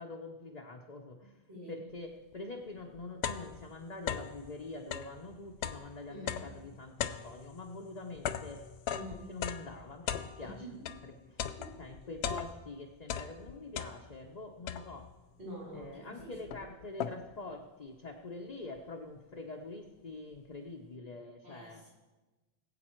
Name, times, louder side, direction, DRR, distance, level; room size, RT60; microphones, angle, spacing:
voice 1, 0.0-1.4 1.7-8.7 9.3-10.6 11.0-11.4 11.8-15.1 15.7-21.8, left 2 dB, 40° left, 0 dB, 1.0 m, -45 dB
voice 2, 1.5-1.8 6.1-6.5 8.9-9.3 10.4-10.9 11.6-11.8 15.4-16.6 21.4-21.9, equal, 70° right, -6 dB, 5.6 m, -46 dB
sound 1, 2.3-2.4 2.8-4.4 4.8-11.1 11.4-12.8 13.0-14.3 14.7-15.2 15.8-15.9 16.2-17.4, left 8 dB, 75° left, 0.9 m, -39 dB
20.0 x 8.4 x 4.5 m, 1.2 s
omnidirectional pair, 1.1 m